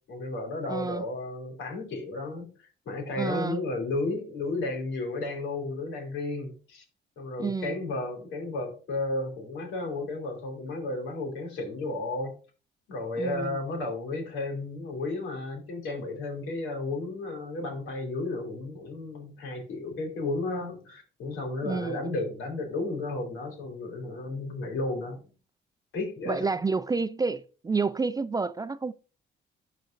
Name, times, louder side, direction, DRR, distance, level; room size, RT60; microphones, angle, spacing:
voice 1, 0.1-6.8 7.2-12.3 12.9-25.3 25.9-26.6, left 2 dB, 85° left, 2.9 m, -33 dB
voice 2, 0.7-1.0 3.2-3.6 7.4-7.8 13.2-13.6 21.6-22.0 26.3-28.9, right 4 dB, 20° right, 0.3 m, -29 dB
11.0 x 4.1 x 2.5 m
cardioid pair, 90°, 20 cm